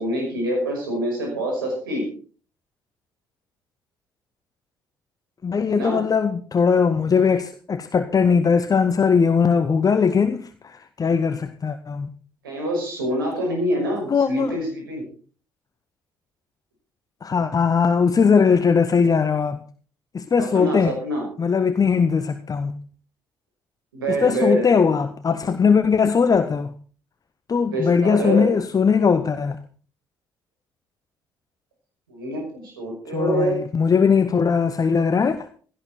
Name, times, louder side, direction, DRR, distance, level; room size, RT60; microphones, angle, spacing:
voice 1, 0.0-2.1 5.7-6.0 12.4-15.0 20.4-21.2 23.9-24.7 27.7-28.5 32.1-33.6, right 1 dB, 80° right, 5.9 m, -25 dB
voice 2, 5.4-12.1 14.1-14.6 17.2-19.6 20.1-20.9 21.4-22.8 24.1-26.7 27.5-29.6 33.1-35.5, left 6 dB, 30° left, 1.1 m, -20 dB
16.5 x 13.5 x 4.4 m
figure-of-eight pair, 50°, 12 cm